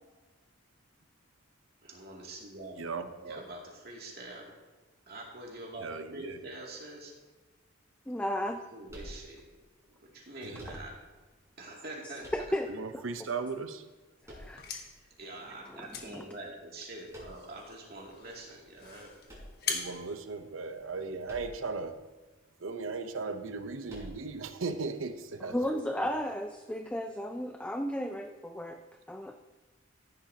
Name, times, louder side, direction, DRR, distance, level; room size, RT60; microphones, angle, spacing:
voice 1, 1.8-2.8 3.2-4.5 5.1-7.1 8.4-9.4 9.8-11.0 11.6-12.5 14.9-19.2, right 2 dB, 50° right, -2 dB, 2.6 m, -45 dB
voice 2, 2.8-3.5 5.8-6.4 10.4-10.8 12.7-13.9 19.6-22.0 22.6-26.1, right 4 dB, 80° right, 8 dB, 0.8 m, -37 dB
voice 3, 8.1-8.6 12.3-12.7 14.3-14.6 15.7-16.3 25.5-28.8 29.1-29.4, equal, 5° left, 5 dB, 0.4 m, -34 dB
sound 1, 8.9-9.7 10.5-11.2 12.2-12.9 14.2-15.0 17.1-17.7 19.2-20.1 21.2-21.8 22.1-22.2 23.9-24.5, equal, 15° right, 4.3 m, -48 dB
sound 2, 14.4-21.1, left 5 dB, 50° left, 1.4 m, -43 dB
15.0 x 10.5 x 2.9 m, 1.3 s
head